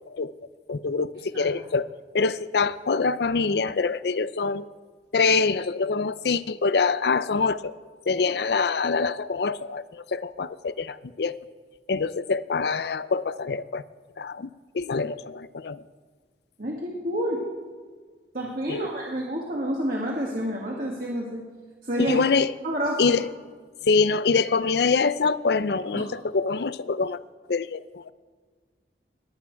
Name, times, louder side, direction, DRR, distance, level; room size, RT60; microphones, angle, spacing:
voice 1, 0.7-1.9 2.1-4.6 5.1-7.8 8.1-11.4 11.9-13.8 14.2-14.5 14.7-15.8 18.7-18.9 22.0-22.5 23.0-23.2 23.8-27.2 27.5-28.1, left 4 dB, 65° left, 16 dB, 0.5 m, -25 dB
voice 2, 16.6-17.4 18.3-21.4 21.8-22.2 22.6-23.2 25.9-26.0, equal, 50° right, -2 dB, 1.8 m, -29 dB
21.5 x 8.6 x 4.6 m, 1.5 s
head